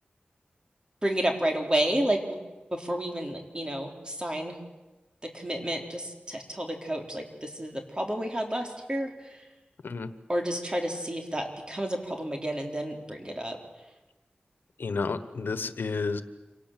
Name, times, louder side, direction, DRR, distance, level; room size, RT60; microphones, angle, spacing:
voice 1, 1.0-2.2 2.7-4.6 5.2-9.4 10.3-13.6, right 1 dB, 25° right, 3 dB, 4.1 m, -30 dB
voice 2, 14.8-16.2, left 4 dB, 90° left, 12 dB, 1.2 m, -31 dB
26.5 x 18.5 x 7.6 m, 1.1 s
wide cardioid pair, 50°, 3 cm